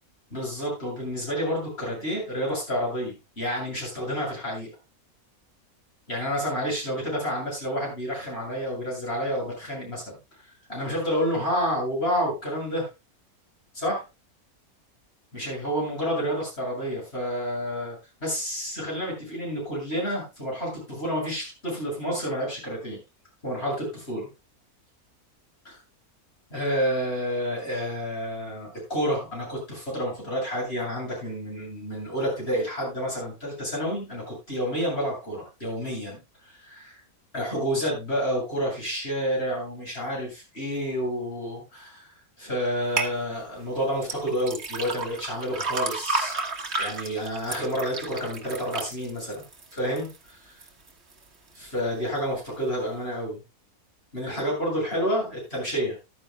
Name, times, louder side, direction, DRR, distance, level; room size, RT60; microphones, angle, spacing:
voice 1, 0.3-4.7 6.1-10.2 10.7-12.9 13.7-14.0 15.3-23.0 23.4-24.3 25.6-25.8 26.5-36.2 36.4-37.0 37.3-42.1 42.4-46.3 46.8-49.4 49.7-50.6 51.5-53.4 54.1-56.0, equal, 45° left, -4 dB, 8.5 m, -29 dB
sound 1, 43.0-43.1 44.0-50.2 50.6-51.1 51.6-51.7, right 3 dB, 50° right, 1.8 m, -31 dB
14.5 x 13.0 x 2.3 m, 0.27 s
omnidirectional pair, 1.5 m